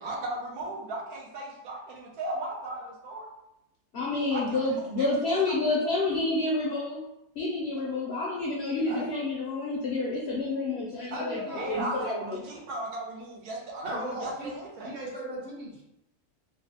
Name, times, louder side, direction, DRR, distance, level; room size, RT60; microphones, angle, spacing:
voice 1, 0.0-3.3 4.3-5.8 11.5-15.0, right 2 dB, 90° right, -1 dB, 1.2 m, -36 dB
voice 2, 3.9-7.0 7.4-12.4, left 2 dB, 65° left, -4 dB, 0.6 m, -29 dB
voice 3, 8.9-9.2 11.1-11.7 13.8-14.5 14.8-15.8, right 1 dB, 55° right, -4 dB, 1.1 m, -36 dB
3.2 x 2.0 x 2.7 m, 0.86 s
omnidirectional pair, 1.5 m